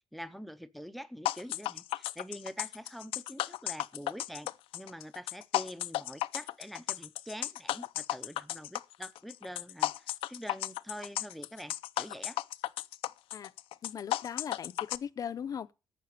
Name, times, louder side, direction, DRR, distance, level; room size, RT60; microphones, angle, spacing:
voice 1, 0.1-12.4, equal, ahead, 0.6 m, -45 dB
sound 1, 1.3-15.0, left 15 dB, 85° left, 0.5 m, -34 dB
voice 2, 13.8-15.7, left 8 dB, 40° left, 0.6 m, -39 dB
12.0 x 7.6 x 6.5 m
cardioid pair, 140°, 9 cm